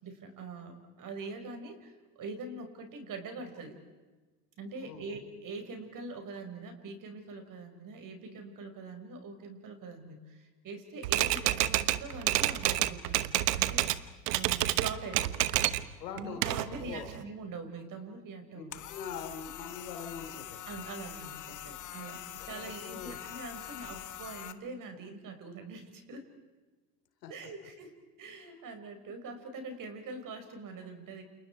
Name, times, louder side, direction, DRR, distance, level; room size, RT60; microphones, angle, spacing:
voice 1, 0.0-3.8 4.6-14.0 14.3-18.8 20.7-26.3 27.3-27.9 28.2-31.2, right 3 dB, 40° right, 6 dB, 5.6 m, -43 dB
Typewriter, 11.0-14.0 14.3-15.9 16.2-17.2, right 15 dB, 75° right, 1.2 m, -28 dB
voice 2, 16.0-17.1 18.5-20.6 22.4-23.2 27.2-27.3, left 7 dB, 85° left, 5 dB, 4.5 m, -43 dB
sound 1, 18.7-24.5, left 12 dB, 40° left, 1.5 m, -44 dB
29.5 x 28.5 x 4.8 m, 1.3 s
hypercardioid pair, 95°, 48 cm